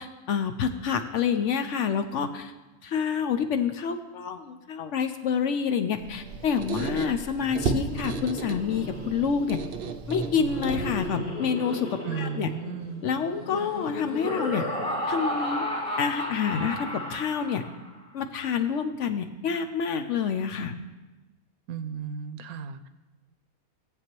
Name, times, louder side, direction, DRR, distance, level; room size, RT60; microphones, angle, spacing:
voice 1, 0.0-2.5 2.8-9.6 10.1-12.5 13.0-14.7 15.1-15.6 16.0-17.6 18.1-20.7, left 6 dB, 65° left, 8 dB, 0.9 m, -28 dB
Squeak, 6.0-11.2, right 5 dB, 60° right, 0.7 m, -34 dB
Laughter, 7.4-17.9, left 1 dB, 35° left, 2.4 m, -34 dB
voice 2, 12.0-13.0 21.7-22.9, right 7 dB, 85° right, 11 dB, 1.1 m, -35 dB
17.0 x 7.9 x 3.0 m, 1.1 s
omnidirectional pair, 1.5 m